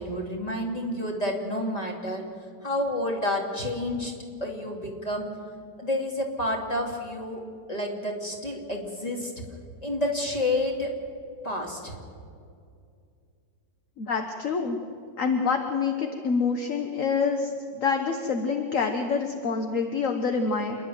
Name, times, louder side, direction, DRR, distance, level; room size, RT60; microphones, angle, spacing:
voice 1, 0.0-2.2 2.6-4.1 4.4-5.3 5.8-7.4 7.7-9.3 9.8-10.9 11.4-12.0, left 1 dB, 20° left, 1 dB, 2.7 m, -29 dB
voice 2, 14.0-14.8 15.2-20.8, left 5 dB, 55° left, 5 dB, 1.4 m, -26 dB
27.5 x 11.0 x 9.4 m, 2.4 s
omnidirectional pair, 1.8 m